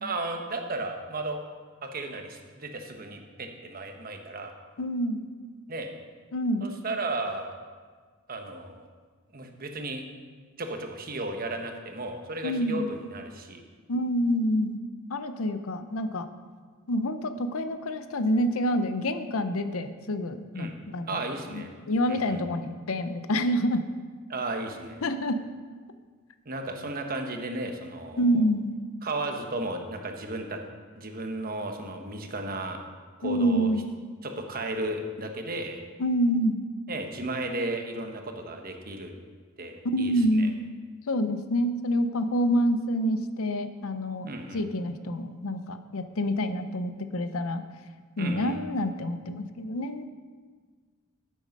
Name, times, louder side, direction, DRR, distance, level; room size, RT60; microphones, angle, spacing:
voice 1, 0.0-1.4 1.9-4.5 5.7-5.9 6.6-7.5 8.3-8.9 9.3-10.0 10.6-13.6 20.5-20.7 21.1-21.7 22.1-22.4 24.3-25.0 26.5-28.4 29.0-30.6 30.9-32.8 33.2-33.7 34.2-35.8 36.9-39.1 39.6-40.5 44.2-44.6 48.2-48.6, right 2 dB, 45° right, 4 dB, 1.1 m, -34 dB
voice 2, 4.8-5.2 6.3-6.7 12.4-12.9 13.9-14.8 15.1-16.3 16.9-21.2 21.5-23.8 25.0-25.4 28.2-28.8 33.2-33.9 36.0-36.6 39.8-40.6 41.1-47.6 48.2-50.0, equal, 85° left, 9 dB, 0.7 m, -27 dB
9.3 x 8.4 x 5.3 m, 1.5 s
head